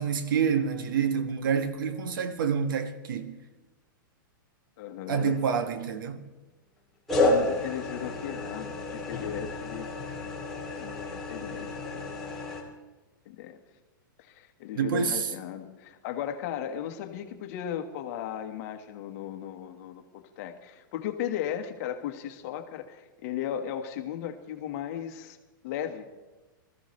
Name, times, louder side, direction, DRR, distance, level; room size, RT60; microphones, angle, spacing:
voice 1, 0.0-3.4 5.1-6.2 14.7-15.3, right 6 dB, 70° right, 1.3 m, -27 dB
voice 2, 4.8-5.4 7.1-9.9 10.8-12.1 13.2-13.6 14.2-25.4 25.6-26.1, left 10 dB, 45° left, 1.3 m, -36 dB
sound 1, 5.1-5.8 7.1-12.6, left 2 dB, ahead, 2.7 m, -31 dB
19.5 x 14.5 x 3.2 m
hypercardioid pair, 150°, 12 cm